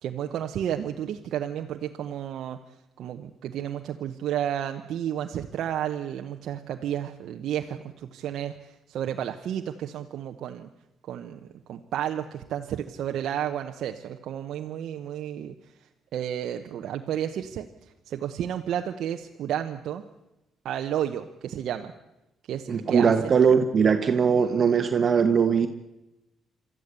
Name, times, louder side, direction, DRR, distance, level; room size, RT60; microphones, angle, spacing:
voice 1, 0.0-2.6 3.0-10.7 11.1-11.4 11.7-15.5 16.1-17.7 18.1-20.0 20.6-21.9 22.5-23.3, right 10 dB, 75° right, 5 dB, 0.9 m, -32 dB
voice 2, 22.7-25.7, right 6 dB, 50° right, 7 dB, 1.3 m, -21 dB
23.5 x 13.5 x 8.2 m, 0.92 s
cardioid pair, 80°, 0 cm